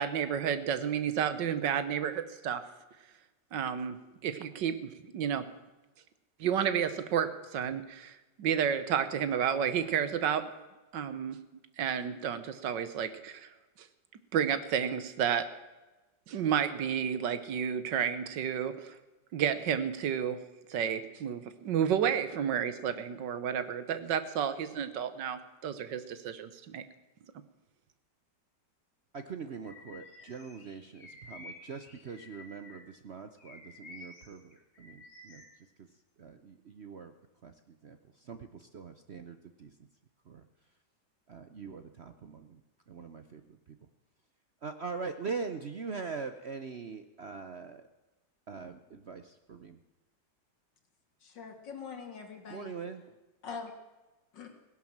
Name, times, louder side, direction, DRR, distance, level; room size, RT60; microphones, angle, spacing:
voice 1, 0.0-2.6 3.5-4.0 4.2-5.4 6.4-10.4 10.9-11.4 11.8-13.5 13.8-13.9 14.3-15.5 16.3-19.0 19.3-20.4 20.7-26.8, right 8 dB, 80° right, 12 dB, 1.7 m, -31 dB
voice 2, 29.1-35.4 35.8-35.9 36.2-37.1 37.4-39.7 40.3-40.4 41.3-42.6 42.9-43.6 44.6-47.8 48.5-49.8 52.5-53.2, right 5 dB, 55° right, 9 dB, 0.8 m, -42 dB
Bird vocalization bird call bird song, 29.6-32.9 33.4-35.6, left 2 dB, 40° left, 2.1 m, -52 dB
voice 3, 51.2-52.7 53.4-53.7 54.3-54.5, left 5 dB, 75° left, 5 dB, 2.7 m, -43 dB
17.0 x 11.0 x 7.3 m, 1.1 s
omnidirectional pair, 1.9 m